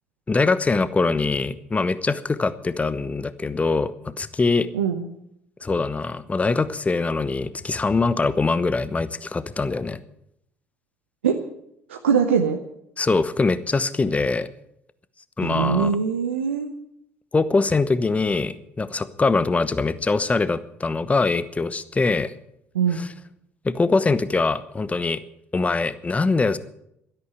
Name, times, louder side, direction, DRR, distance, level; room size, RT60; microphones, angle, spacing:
voice 1, 0.3-4.7 5.6-10.0 13.0-14.5 15.4-16.0 17.3-22.3 22.9-23.1 23.6-25.2 25.5-26.6, left 3 dB, 20° left, 15 dB, 1.0 m, -23 dB
voice 2, 11.9-12.6 15.4-16.7 22.7-23.0, right 7 dB, 80° right, 4 dB, 0.9 m, -22 dB
12.5 x 11.0 x 8.2 m, 0.76 s
figure-of-eight pair, 55°, 6 cm